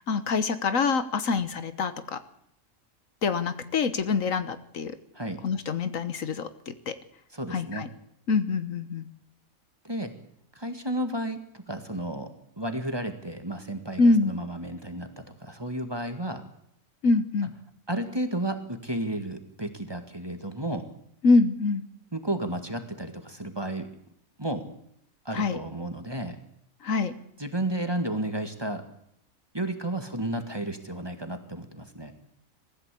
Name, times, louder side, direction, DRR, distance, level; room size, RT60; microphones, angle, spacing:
voice 1, 0.1-2.2 3.2-4.9 5.4-6.9 7.5-7.9 8.3-9.0 14.0-14.3 17.0-17.5 21.2-21.8 25.3-25.6 26.8-27.1, left 4 dB, 70° left, 11 dB, 1.5 m, -25 dB
voice 2, 7.3-7.9 9.8-10.1 10.6-12.3 12.6-16.4 17.9-20.9 22.1-23.9 24.4-24.6 25.3-26.4 27.4-28.8 29.5-32.1, right 1 dB, 15° right, 7 dB, 1.9 m, -32 dB
21.0 x 15.5 x 8.4 m, 0.70 s
omnidirectional pair, 1.4 m